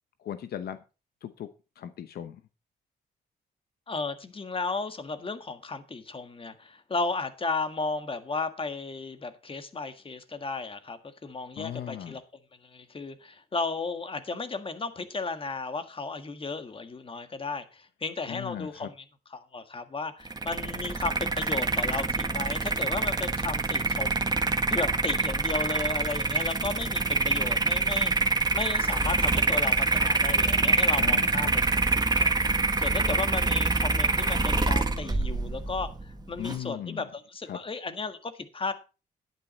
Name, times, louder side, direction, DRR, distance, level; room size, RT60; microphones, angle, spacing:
voice 1, 0.2-0.8 1.2-1.5 1.8-2.4 11.6-12.2 18.3-18.9 31.0-31.5 36.4-37.0 37.5-37.6, left 10 dB, 70° left, 11 dB, 0.9 m, -37 dB
voice 2, 3.9-12.2 12.6-18.9 19.3-24.3 24.7-28.1 28.5-31.6 32.2-38.7, left 3 dB, 35° left, 9 dB, 1.7 m, -34 dB
sound 1, 20.3-36.6, right 3 dB, 25° right, 1.5 m, -26 dB
10.5 x 9.3 x 4.2 m, 0.32 s
cardioid pair, 70°, 17 cm